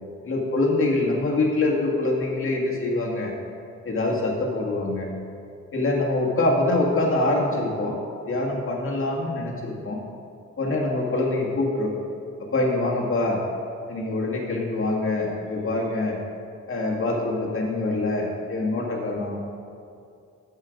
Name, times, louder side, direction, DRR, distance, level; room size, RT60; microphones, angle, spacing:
voice 1, 0.2-3.3 3.8-5.1 5.7-8.0 8.3-10.0 10.6-11.9 12.4-13.4 13.9-16.2 16.7-19.5, left 2 dB, 45° left, -2 dB, 1.9 m, -24 dB
13.0 x 5.6 x 5.2 m, 2.5 s
cardioid pair, 95°, 29 cm